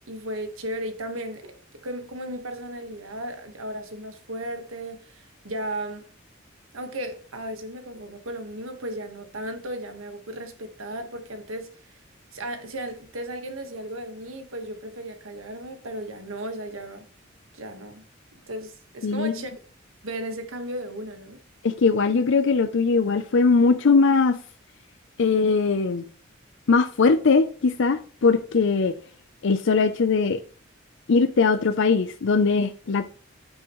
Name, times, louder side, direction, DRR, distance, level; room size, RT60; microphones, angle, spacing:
voice 1, 0.1-6.1 6.7-11.7 12.3-17.1 17.5-18.0 18.5-19.5 20.0-21.4, right 1 dB, 85° right, 1.4 m, -35 dB
voice 2, 19.0-19.3 21.6-24.4 25.2-26.0 26.7-28.9 29.4-30.4 31.1-33.0, left 4 dB, 65° left, 0.5 m, -20 dB
8.6 x 8.6 x 3.1 m
head